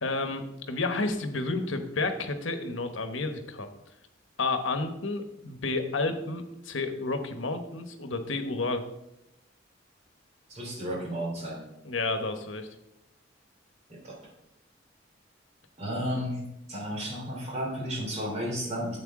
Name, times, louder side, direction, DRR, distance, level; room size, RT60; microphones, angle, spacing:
voice 1, 0.0-3.7 4.4-8.8 11.8-12.7, left 3 dB, 85° left, 7 dB, 1.1 m, -31 dB
voice 2, 10.5-11.6 14.0-14.1 15.8-16.4 16.7-19.0, equal, 35° right, -2 dB, 3.6 m, -32 dB
11.0 x 8.0 x 3.7 m, 0.87 s
head